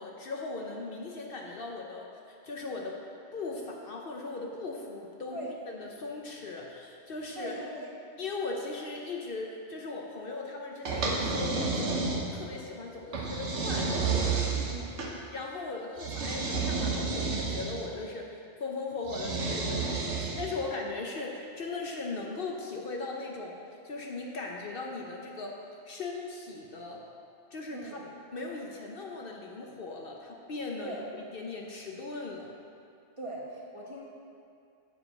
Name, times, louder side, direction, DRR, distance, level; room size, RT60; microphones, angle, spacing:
voice 1, 0.0-3.0 3.3-5.4 5.7-7.5 8.2-13.9 15.3-18.3 18.6-23.6 23.8-25.6 25.9-27.0 27.5-28.1 28.3-31.0 31.3-32.5, left 3 dB, 55° left, 0 dB, 0.9 m, -38 dB
voice 2, 7.4-7.9 14.4-15.0 27.7-28.1 30.8-31.0 33.2-34.0, right 1 dB, 30° right, -4 dB, 1.2 m, -41 dB
sound 1, 10.9-12.5 13.1-15.1 16.0-17.9 19.0-20.6, right 4 dB, 80° right, 1.3 m, -31 dB
7.6 x 4.9 x 6.5 m, 2.4 s
omnidirectional pair, 1.2 m